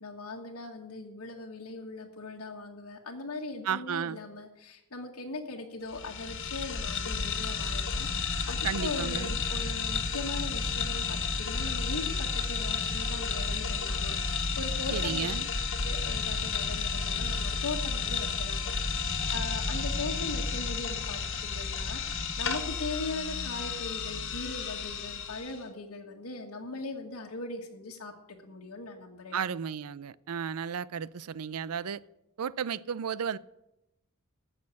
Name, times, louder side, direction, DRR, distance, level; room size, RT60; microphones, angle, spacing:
voice 1, 0.0-15.3 15.8-28.1 28.4-29.5, left 3 dB, 80° left, 1.5 m, -40 dB
voice 2, 3.6-4.2 8.6-9.4 14.9-15.5 29.3-32.0 32.4-33.4, right 7 dB, 80° right, 0.5 m, -33 dB
sound 1, 5.9-25.6, left 4 dB, 60° left, 1.6 m, -32 dB
15.0 x 6.5 x 8.4 m
head